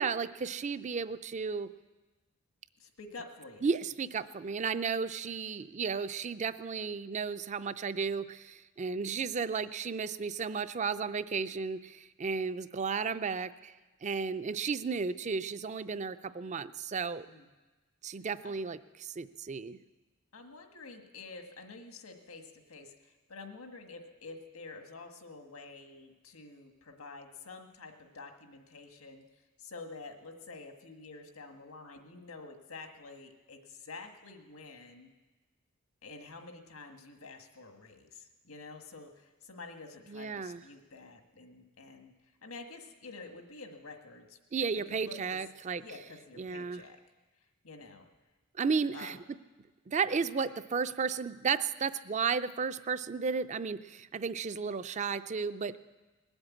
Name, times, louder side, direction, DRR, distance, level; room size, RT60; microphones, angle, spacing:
voice 1, 0.0-1.7 3.6-13.7 14.0-17.3 18.0-19.8 40.1-40.6 44.5-45.8 46.4-46.8 48.5-49.2 49.9-55.8, right 5 dB, 35° right, 14 dB, 0.4 m, -33 dB
voice 2, 2.8-3.7 17.3-17.5 18.4-18.6 20.3-35.1 36.0-42.1 42.4-44.4 45.0-45.2 45.8-47.0 47.6-48.1 48.9-49.2, left 3 dB, 90° left, 4 dB, 1.6 m, -48 dB
20.0 x 8.0 x 8.4 m, 1.2 s
head